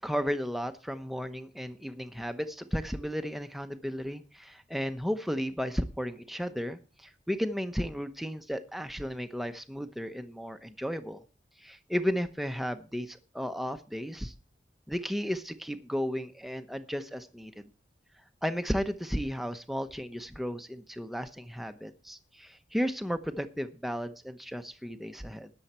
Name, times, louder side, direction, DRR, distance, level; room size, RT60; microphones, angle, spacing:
voice 1, 0.0-11.2 11.6-14.3 14.9-17.7 18.4-25.5, equal, ahead, 9 dB, 0.9 m, -34 dB
19.5 x 7.2 x 4.4 m, 0.34 s
head